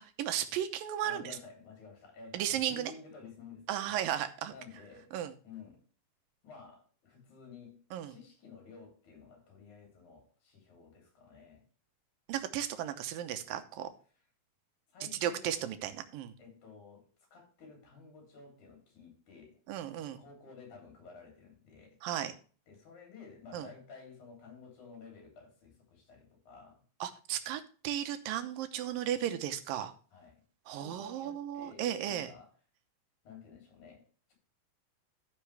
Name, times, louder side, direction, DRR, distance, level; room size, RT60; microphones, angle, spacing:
voice 1, 0.0-1.4 2.3-2.9 3.7-4.5 5.1-5.3 7.9-8.2 12.3-13.9 15.2-16.4 19.7-20.2 22.0-22.3 23.5-23.7 27.0-29.9 30.7-32.3, right 11 dB, 75° right, 2.6 m, -35 dB
voice 2, 1.0-5.2 5.4-5.8 6.4-11.6 14.9-15.6 16.4-17.0 17.3-19.6 20.2-22.0 22.7-26.8 30.1-30.4 30.7-32.5 33.2-34.0 34.3-34.4, left 5 dB, 55° left, 4.6 m, -53 dB
14.0 x 6.0 x 3.3 m
omnidirectional pair, 4.2 m